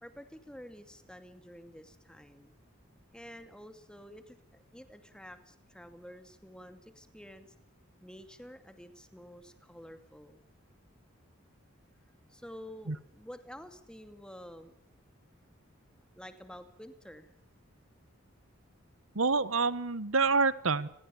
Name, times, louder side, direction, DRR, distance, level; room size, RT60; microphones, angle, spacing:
voice 1, 0.0-2.5 3.1-7.5 8.0-10.4 12.3-14.7 16.2-17.3, equal, 5° left, 9 dB, 2.4 m, -50 dB
voice 2, 19.1-20.9, right 4 dB, 90° right, 17 dB, 1.3 m, -27 dB
30.0 x 21.5 x 7.1 m, 0.67 s
head